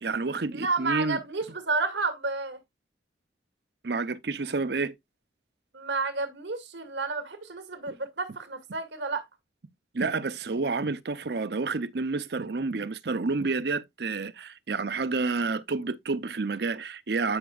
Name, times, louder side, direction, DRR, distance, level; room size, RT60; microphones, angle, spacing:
voice 1, 0.0-1.2 3.8-4.9 7.9-8.0 9.9-17.4, right 3 dB, 60° right, 0.7 m, -29 dB
voice 2, 0.5-2.6 5.7-9.2, right 3 dB, 85° right, 2.3 m, -31 dB
11.0 x 6.1 x 2.4 m
head